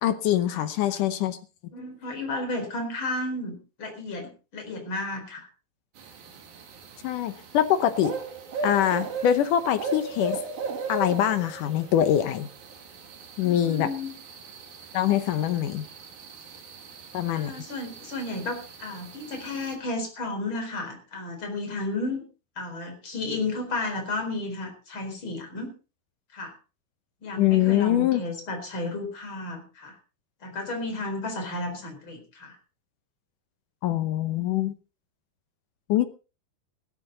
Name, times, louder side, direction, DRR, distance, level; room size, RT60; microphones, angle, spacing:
voice 1, 0.0-1.4 7.0-8.1 8.6-10.4 10.9-12.5 13.4-13.9 14.9-15.9 17.1-17.5 27.4-28.2 33.8-34.8 35.9-36.1, left 11 dB, 70° left, 11 dB, 2.2 m, -24 dB
voice 2, 1.7-5.5 13.4-14.2 17.3-22.2 22.6-25.7 26.3-26.5 27.2-29.9 30.4-32.5, left 2 dB, 30° left, 4 dB, 4.9 m, -33 dB
sound 1, 6.0-19.8, right 5 dB, 70° right, 4.2 m, -38 dB
16.0 x 14.0 x 4.0 m, 0.33 s
omnidirectional pair, 4.3 m